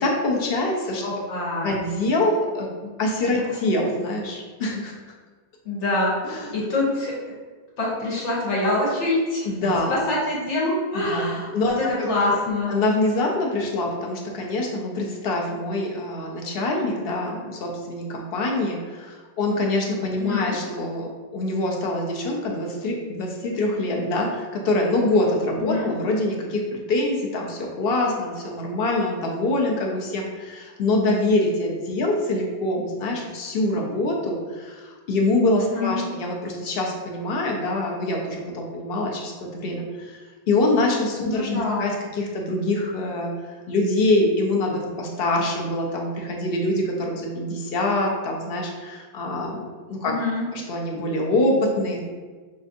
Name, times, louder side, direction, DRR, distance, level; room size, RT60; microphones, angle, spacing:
voice 1, 0.0-1.0 1.6-2.7 3.0-4.9 6.2-6.5 9.4-10.0 10.9-12.4 12.7-40.2 40.5-43.3 43.7-50.1 50.5-52.0, left 2 dB, 65° left, 0 dB, 0.8 m, -25 dB
voice 2, 1.0-1.7 5.6-6.1 6.5-7.1 7.8-9.5 9.9-12.7 20.2-20.5 25.6-25.9 35.6-36.0 41.3-41.8 50.0-50.4, left 2 dB, 90° left, -5 dB, 1.4 m, -25 dB
5.1 x 2.4 x 2.5 m, 1.4 s
omnidirectional pair, 1.2 m